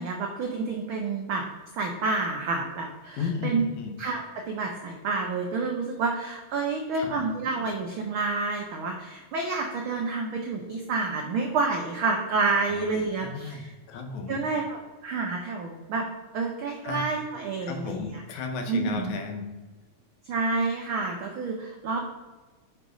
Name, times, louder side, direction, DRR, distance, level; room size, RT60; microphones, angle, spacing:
voice 1, 0.0-1.4 1.7-3.6 4.0-13.7 14.3-16.1 16.3-18.2 18.7-19.1 20.3-22.0, right 4 dB, 85° right, 1 dB, 1.1 m, -29 dB
voice 2, 3.2-4.0 6.9-7.1 12.7-12.8 13.2-14.4 16.8-17.0 17.6-19.5, left 5 dB, 75° left, 5 dB, 2.3 m, -34 dB
6.6 x 4.6 x 5.0 m, 1.2 s
omnidirectional pair, 3.3 m